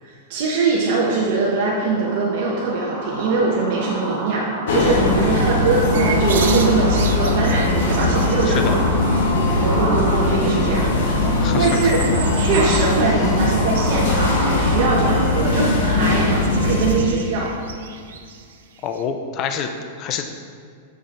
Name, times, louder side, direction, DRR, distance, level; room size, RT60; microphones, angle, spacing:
voice 1, 0.0-4.5 4.7-9.2 9.5-11.2 11.6-12.0 12.4-17.5, right 3 dB, 45° right, -4 dB, 1.0 m, -22 dB
sound 1, 1.2-16.5, right 1 dB, 10° right, 1.4 m, -30 dB
sound 2, 4.7-16.9, left 2 dB, 65° left, 1.4 m, -20 dB
sound 3, 5.9-8.7 9.2-9.9 10.2-10.5 10.8-13.0 13.3-15.2 16.0-19.0, right 7 dB, 90° right, 0.7 m, -34 dB
voice 2, 11.0-12.2 18.8-19.7 20.0-20.3, left 7 dB, 25° left, 6 dB, 0.5 m, -28 dB
7.3 x 6.4 x 4.3 m, 2.1 s
supercardioid pair, 175°, 0 cm